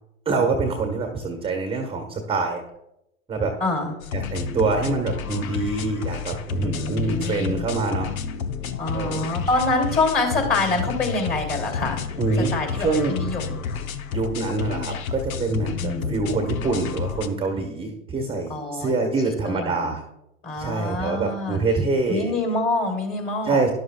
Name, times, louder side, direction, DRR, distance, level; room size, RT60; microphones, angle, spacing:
voice 1, 0.2-2.6 3.3-3.5 4.1-8.1 8.9-9.3 12.2-13.1 14.1-20.0 20.6-22.3 23.4-23.7, right 3 dB, 10° right, 3 dB, 1.3 m, -25 dB
voice 2, 3.6-3.9 6.6-7.7 8.8-12.0 12.3-13.6 15.8-16.2 18.5-18.9 19.4-19.9 20.4-21.6 22.1-23.6, left 2 dB, 20° left, 3 dB, 3.1 m, -26 dB
sound 1, 4.0-17.3, left 6 dB, 70° left, 0.9 m, -30 dB
13.0 x 11.0 x 2.3 m, 0.86 s
hypercardioid pair, 110°, 44 cm